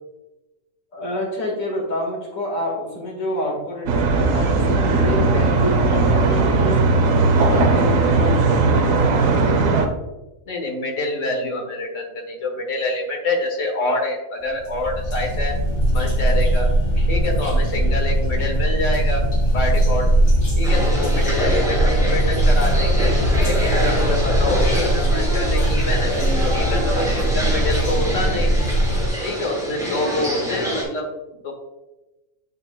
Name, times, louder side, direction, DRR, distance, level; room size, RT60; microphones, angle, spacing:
voice 1, 0.9-6.9 7.2-10.0, left 1 dB, 85° left, -1 dB, 2.1 m, -28 dB
sound 1, 3.9-9.9, right 3 dB, 90° right, 1.2 m, -18 dB
voice 2, 10.5-15.5 15.9-16.7 17.1-19.2 19.5-20.1 20.5-23.1 23.4-28.5 29.2-31.5, left 2 dB, 65° left, 3 dB, 1.5 m, -26 dB
sound 2, 14.5-29.1, right 1 dB, 45° left, 1.6 m, -20 dB
sound 3, 20.6-30.8, equal, 5° right, 2.1 m, -26 dB
8.7 x 5.4 x 2.2 m, 1.0 s
omnidirectional pair, 1.4 m